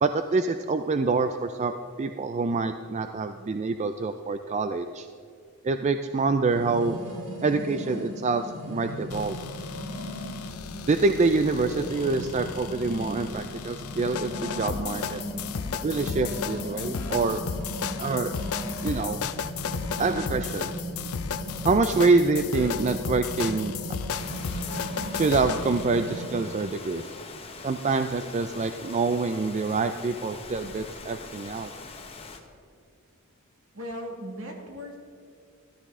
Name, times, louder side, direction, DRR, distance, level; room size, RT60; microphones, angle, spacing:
voice 1, 0.0-5.1 5.6-7.0 7.4-9.4 10.9-15.2 15.8-17.4 18.0-18.3 18.8-19.2 20.0-20.7 21.6-23.7 25.1-27.2 27.6-31.7, right 3 dB, 30° right, 8 dB, 0.4 m, -26 dB
sound 1, 6.5-26.3, equal, 90° right, 3.2 m, -37 dB
sound 2, 9.1-25.9, left 6 dB, 75° left, 0.5 m, -34 dB
Rain, 24.2-32.4, left 4 dB, 25° left, 1.0 m, -43 dB
voice 2, 33.7-35.0, equal, 65° right, 1 dB, 2.2 m, -37 dB
13.5 x 13.0 x 3.7 m, 2.3 s
head